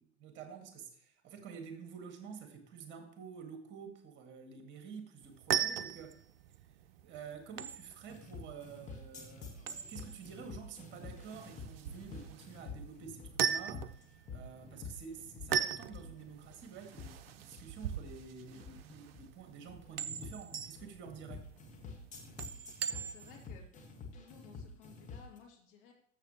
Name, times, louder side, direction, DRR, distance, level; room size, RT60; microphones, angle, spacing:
voice 1, 0.0-6.2 7.0-14.0 14.3-21.5, right 6 dB, 30° right, 6 dB, 1.9 m, -49 dB
sound 1, 5.2-23.5, right 8 dB, 55° right, 0.6 m, -40 dB
sound 2, 8.1-25.4, left 4 dB, 20° left, 1.6 m, -49 dB
voice 2, 22.9-23.7 24.1-25.9, left 6 dB, 50° left, 1 dB, 2.5 m, -57 dB
13.0 x 7.4 x 3.0 m, 0.63 s
figure-of-eight pair, 90°, 36 cm